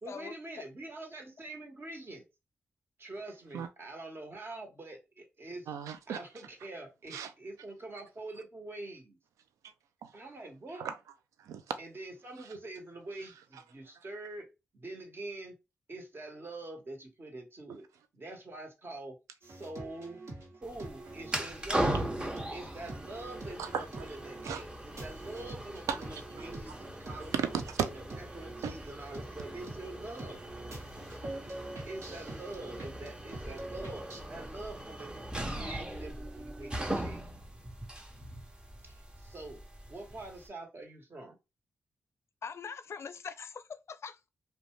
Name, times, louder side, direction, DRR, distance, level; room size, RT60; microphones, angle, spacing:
voice 1, 0.0-2.2 3.0-5.7 6.1-9.2 10.1-10.9 11.8-14.5 14.7-15.6 15.9-17.8 18.1-19.2 19.4-20.2 20.6-22.1 22.5-27.4 27.8-30.4 31.8-37.2 38.8-39.6 39.9-41.4, right 2 dB, 45° right, 1.0 m, -45 dB
voice 2, 5.7-6.2 7.1-7.3 10.0-10.1 10.8-11.0 11.4-11.8 23.6-24.1 24.4-24.6 25.9-26.2 27.3-27.9 28.6-28.7, right 7 dB, 85° right, 0.3 m, -35 dB
sound 1, 19.4-34.2, right 2 dB, 65° right, 1.1 m, -46 dB
sound 2, 20.6-40.5, right 1 dB, 15° right, 0.7 m, -40 dB
voice 3, 42.4-44.3, left 6 dB, 55° left, 0.4 m, -42 dB
2.5 x 2.1 x 3.0 m
supercardioid pair, 40°, 5 cm